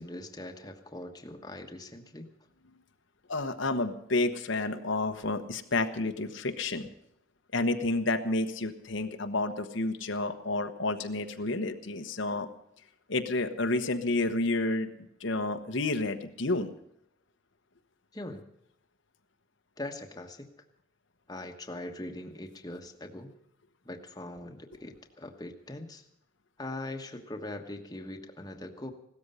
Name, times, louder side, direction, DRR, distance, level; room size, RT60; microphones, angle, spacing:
voice 1, 0.0-2.3 18.1-18.5 19.8-20.5 21.3-23.3 23.8-26.0 26.6-28.9, left 1 dB, 20° left, 4 dB, 1.3 m, -41 dB
voice 2, 3.3-6.9 7.5-12.5 13.1-14.9 15.2-16.7, left 2 dB, 80° left, 7 dB, 1.2 m, -30 dB
16.5 x 13.0 x 5.6 m, 0.76 s
head